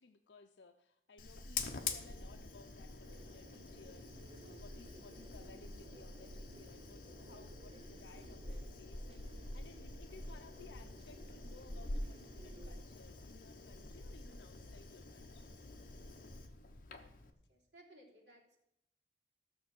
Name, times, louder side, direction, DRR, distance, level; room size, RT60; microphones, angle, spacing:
voice 1, 0.0-15.5, left 4 dB, 80° left, 6 dB, 0.6 m, -60 dB
Fire, 1.2-17.3, left 3 dB, 50° left, 1.1 m, -47 dB
sound 1, 3.1-12.8, right 3 dB, 35° right, 0.3 m, -59 dB
voice 2, 17.5-18.6, right 1 dB, 70° right, -2 dB, 3.4 m, -61 dB
14.5 x 6.8 x 6.2 m, 0.79 s
head